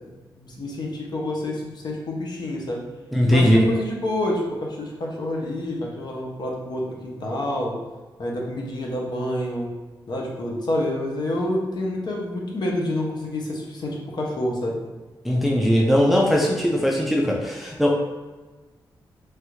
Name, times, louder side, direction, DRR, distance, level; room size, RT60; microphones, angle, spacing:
voice 1, 0.0-2.8 3.3-7.8 8.2-9.7 10.1-14.8, left 1 dB, 60° left, -2 dB, 0.7 m, -28 dB
voice 2, 3.1-3.7 15.2-17.9, equal, ahead, -2 dB, 0.4 m, -19 dB
3.1 x 2.3 x 3.1 m, 1.3 s
cardioid pair, 90°, 8 cm